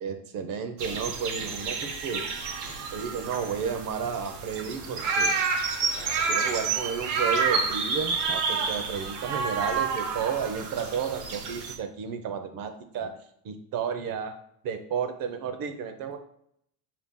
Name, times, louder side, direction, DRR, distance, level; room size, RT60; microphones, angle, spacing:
voice 1, 0.0-2.3 2.9-5.4 6.3-13.1 13.4-14.4 14.6-16.2, right 6 dB, 50° right, 8 dB, 0.6 m, -32 dB
sound 1, 0.8-11.7, right 5 dB, 80° right, 1.0 m, -29 dB
4.4 x 2.9 x 3.6 m, 0.69 s
cardioid pair, 120°, 46 cm